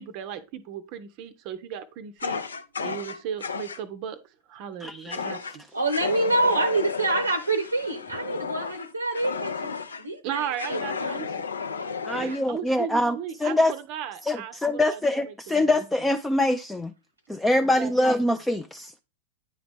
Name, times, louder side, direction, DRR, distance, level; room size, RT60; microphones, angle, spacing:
voice 1, 0.0-2.4 2.8-5.6 10.2-11.3 12.1-15.0 15.3-15.7 17.6-17.9, right 9 dB, 45° right, 0.5 m, -36 dB
Fire, 2.2-3.8 5.1-5.6 5.9-10.0 10.6-12.4, left 5 dB, 70° left, 0.5 m, -33 dB
voice 2, 4.8-5.2 12.1-13.7 14.3-16.9 17.3-19.0, left 1 dB, 5° left, 0.3 m, -24 dB
voice 3, 5.7-11.3, right 2 dB, 85° right, 0.6 m, -27 dB
9.2 x 3.9 x 3.4 m
figure-of-eight pair, 90°, 0 cm